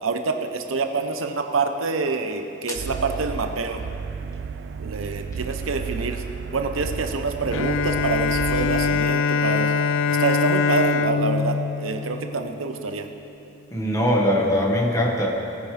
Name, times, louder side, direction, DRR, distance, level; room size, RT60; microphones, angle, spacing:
voice 1, 0.0-3.8 4.8-6.2 6.5-9.7 10.1-13.1, right 4 dB, 90° right, 5 dB, 0.8 m, -26 dB
sound 1, 2.7-9.1, right 6 dB, 55° right, 0.3 m, -32 dB
Bowed string instrument, 7.5-13.0, left 5 dB, 80° left, 0.4 m, -23 dB
voice 2, 13.7-15.3, equal, 15° left, -1 dB, 1.4 m, -21 dB
19.0 x 9.6 x 3.4 m, 3.0 s
head